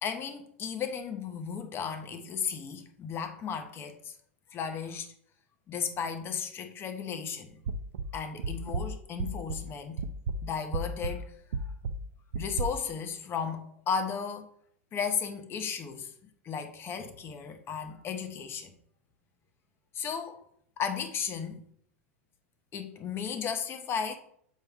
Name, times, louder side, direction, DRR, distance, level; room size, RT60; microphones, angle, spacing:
voice 1, 0.0-4.1 4.5-5.1 5.7-7.6 8.1-10.0 10.4-11.3 12.4-14.5 14.9-16.1 16.4-18.7 19.9-20.4 20.8-21.6 22.7-24.2, left 6 dB, 30° left, 7 dB, 1.0 m, -34 dB
sound 1, 7.7-9.7 10.0-12.6, right 3 dB, 70° right, 0.6 m, -34 dB
7.5 x 4.4 x 3.5 m, 0.64 s
hypercardioid pair, 95°, 7 cm